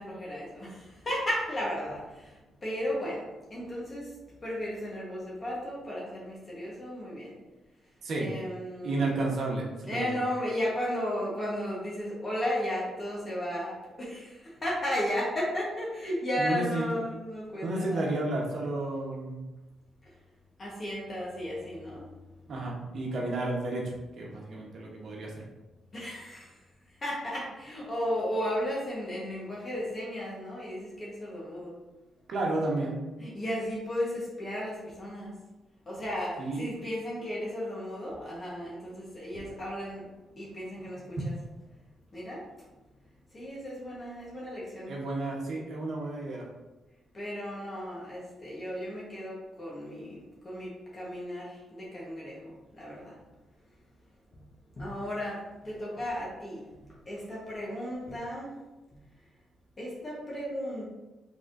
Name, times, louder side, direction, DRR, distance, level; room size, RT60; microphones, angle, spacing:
voice 1, 0.0-2.4 2.6-3.2 3.5-4.1 4.4-7.4 8.2-9.0 9.9-18.2 20.6-22.1 25.9-26.5 27.0-31.7 33.2-35.3 35.9-40.1 40.4-41.2 42.1-42.4 43.3-45.0 47.1-53.2 54.8-56.6 57.0-58.5 59.8-60.8, equal, 35° left, -6 dB, 1.2 m, -34 dB
voice 2, 8.0-8.3 8.8-10.2 16.4-16.8 17.6-19.4 22.5-25.3 32.3-33.1 36.4-36.6 44.9-46.5, right 2 dB, 65° right, -2 dB, 1.0 m, -32 dB
3.9 x 3.6 x 2.6 m, 1.1 s
cardioid pair, 90°, 0 cm